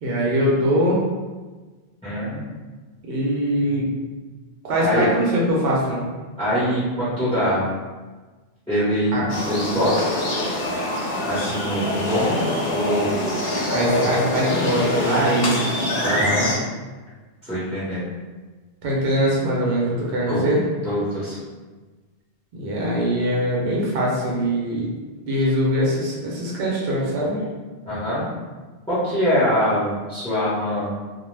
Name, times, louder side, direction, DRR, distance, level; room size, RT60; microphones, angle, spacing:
voice 1, 0.0-1.0 3.1-3.9 4.6-6.1 9.1-9.3 13.7-15.6 18.8-20.6 22.5-24.9 25.2-27.4, equal, 70° right, -4 dB, 0.8 m, -22 dB
voice 2, 2.0-2.4 4.8-5.1 6.4-7.7 8.7-10.0 11.3-12.4 12.7-13.2 16.0-16.5 17.4-18.1 20.2-20.5 20.8-21.4 27.8-28.3 28.9-30.9, equal, 5° left, -12 dB, 0.8 m, -23 dB
sound 1, 9.3-16.6, left 1 dB, 80° left, 0.9 m, -25 dB
2.2 x 2.2 x 3.1 m, 1.3 s
omnidirectional pair, 1.0 m